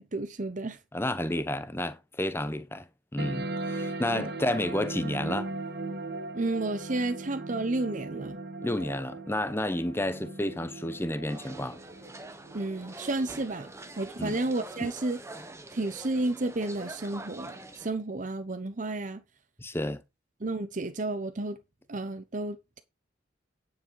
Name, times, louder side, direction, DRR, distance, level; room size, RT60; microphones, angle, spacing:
voice 1, 0.0-0.8 4.1-4.3 6.3-8.4 12.5-13.7 14.0-15.2 15.7-19.2 20.4-21.6 21.9-22.8, right 2 dB, 40° right, 0.9 m, -32 dB
voice 2, 0.9-2.9 3.1-5.5 8.6-11.8 14.2-14.4 19.6-20.0, left 1 dB, 10° left, 1.0 m, -31 dB
sound 1, 3.2-14.2, right 2 dB, 60° right, 1.3 m, -38 dB
sound 2, 11.3-17.9, right 2 dB, 15° right, 1.2 m, -45 dB
9.8 x 6.2 x 4.7 m
head